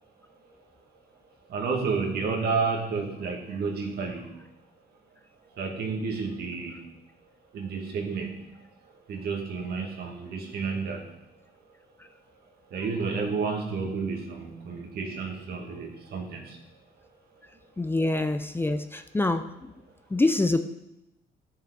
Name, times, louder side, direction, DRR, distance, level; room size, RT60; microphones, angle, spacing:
voice 1, 1.5-4.3 5.6-6.8 7.5-8.3 9.1-11.0 12.7-16.6, right 4 dB, 70° right, 1 dB, 2.1 m, -31 dB
voice 2, 17.8-19.7 20.1-20.6, left 2 dB, 15° left, 9 dB, 0.5 m, -25 dB
12.0 x 7.0 x 4.0 m, 0.90 s
cardioid pair, 110°, 17 cm